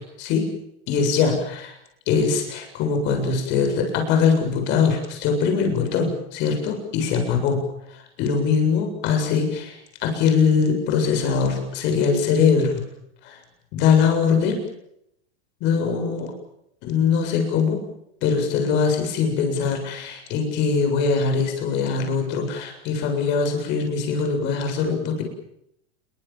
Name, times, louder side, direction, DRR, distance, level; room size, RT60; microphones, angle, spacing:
voice 1, 0.2-0.5 0.9-1.8 2.1-12.8 13.2-13.4 13.7-14.6 15.6-16.3 16.8-17.8 18.2-25.2, left 5 dB, 35° left, 4 dB, 7.6 m, -22 dB
28.5 x 24.0 x 7.5 m, 0.78 s
supercardioid pair, 170°, 33 cm